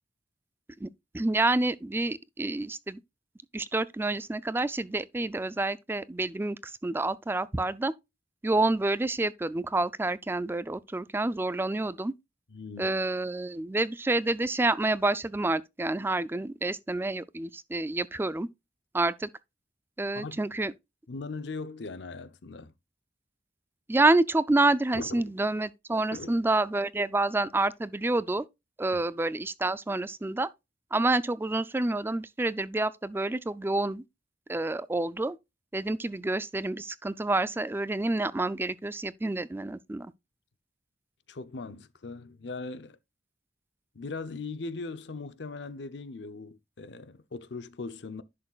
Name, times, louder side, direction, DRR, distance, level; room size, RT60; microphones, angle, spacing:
voice 1, 1.1-3.0 3.5-7.9 8.4-12.1 12.8-18.5 18.9-19.3 20.0-20.7 23.9-28.5 28.8-30.5 30.9-34.0 34.5-35.4 35.7-40.1, right 2 dB, 10° right, 0.4 m, -28 dB
voice 2, 12.5-13.0 20.1-20.5 21.1-22.7 24.9-25.3 26.1-26.4 28.9-29.0 41.3-43.0 43.9-48.2, left 3 dB, 75° left, 0.7 m, -39 dB
11.0 x 6.5 x 2.4 m
head